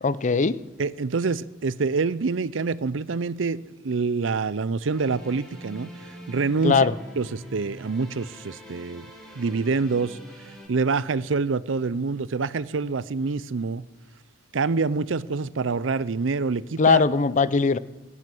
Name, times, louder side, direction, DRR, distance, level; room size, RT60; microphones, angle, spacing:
voice 1, 0.0-0.6 6.6-6.9 16.8-17.8, left 5 dB, 40° left, 0.6 m, -20 dB
voice 2, 0.8-3.6 3.8-5.9 6.3-6.9 7.2-9.1 9.4-10.2 10.7-13.8 14.5-17.0, right 4 dB, 80° right, 0.6 m, -26 dB
sound 1, 4.8-10.7, equal, ahead, 3.2 m, -44 dB
16.5 x 11.0 x 7.7 m
head